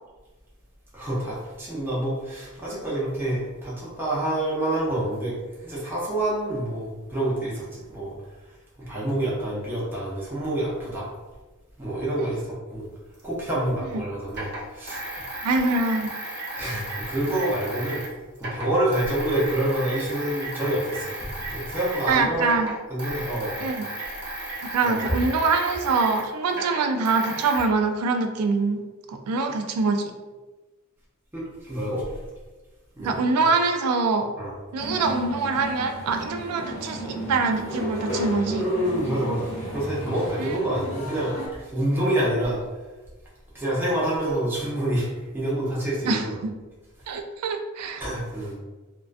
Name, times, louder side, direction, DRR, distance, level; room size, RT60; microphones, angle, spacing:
voice 1, 0.9-5.4 5.6-7.6 7.9-8.1 8.9-11.1 11.8-12.4 12.7-12.8 13.2-15.0 16.5-18.0 18.4-22.5 22.9-23.7 24.8-25.1 31.3-32.0 33.0-33.1 34.4-34.5 38.5-39.5 39.7-41.3 41.7-42.6 43.5-45.1 45.3-46.4 48.0-48.6, right 1 dB, 10° right, -7 dB, 0.5 m, -27 dB
sound 1, 13.2-13.3 14.3-18.1 18.4-22.2 22.4-27.6, right 1 dB, 55° right, 0.7 m, -35 dB
voice 2, 15.4-16.1 22.1-22.7 23.6-23.9 24.6-28.8 29.1-30.1 33.0-34.3 34.7-38.6 40.4-40.6 40.8-40.9 46.1-46.5 47.1-48.0, right 4 dB, 85° right, 5 dB, 0.3 m, -24 dB
sound 2, 34.8-41.5, equal, 30° left, 0.8 m, -34 dB
2.3 x 2.2 x 2.4 m, 1.2 s
head